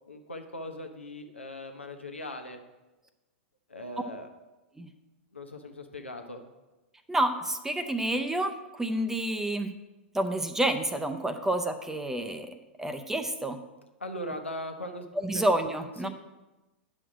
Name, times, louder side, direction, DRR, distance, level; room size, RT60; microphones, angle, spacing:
voice 1, 0.1-2.6 3.7-4.3 5.3-6.4 14.0-15.0 15.3-15.4 16.0-16.1, left 1 dB, 85° left, 5 dB, 1.1 m, -39 dB
voice 2, 7.1-9.7 10.1-13.6 15.2-16.1, right 1 dB, 5° right, 8 dB, 0.6 m, -29 dB
9.9 x 6.2 x 5.0 m, 1.1 s
figure-of-eight pair, 100°, 6 cm